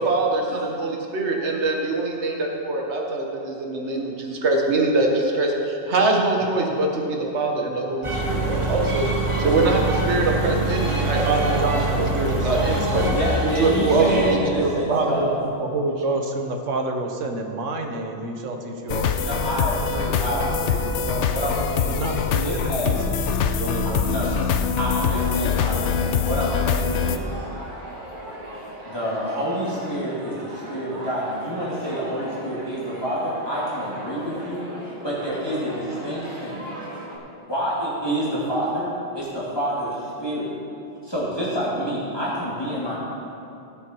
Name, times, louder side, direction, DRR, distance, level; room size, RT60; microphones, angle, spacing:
voice 1, 0.0-9.1 9.4-11.6 12.1-12.8 13.6-15.2, right 2 dB, 65° right, 0 dB, 1.7 m, -23 dB
sound 1, 8.0-14.4, right 2 dB, 25° right, 1.3 m, -25 dB
voice 2, 9.4-9.7 12.4-15.3 19.2-22.9 24.1-24.3 24.8-27.4 28.9-34.7 35.0-36.6 37.5-40.5 41.0-42.9, equal, 20° left, -9 dB, 2.7 m, -28 dB
voice 3, 11.2-12.4 12.9-13.1 14.9-20.3 20.9-21.2 21.8-24.3, right 2 dB, 85° right, 4 dB, 1.4 m, -29 dB
sound 2, 18.9-27.2, left 6 dB, 75° left, 0.9 m, -24 dB
sound 3, 25.0-37.2, right 1 dB, 40° right, 1.8 m, -38 dB
17.0 x 7.5 x 4.6 m, 2.7 s
omnidirectional pair, 1.3 m